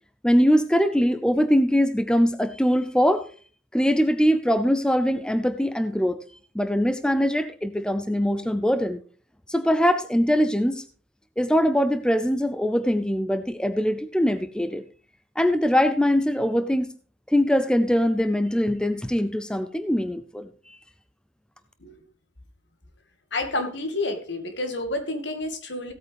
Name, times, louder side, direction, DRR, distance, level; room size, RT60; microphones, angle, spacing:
voice 1, 0.2-3.3 3.7-6.2 6.5-9.0 9.5-10.8 11.4-14.8 15.4-16.9 17.3-20.8, equal, 5° left, 10 dB, 0.5 m, -22 dB
voice 2, 23.3-25.9, left 2 dB, 65° left, 7 dB, 1.9 m, -29 dB
16.5 x 8.6 x 3.4 m, 0.40 s
head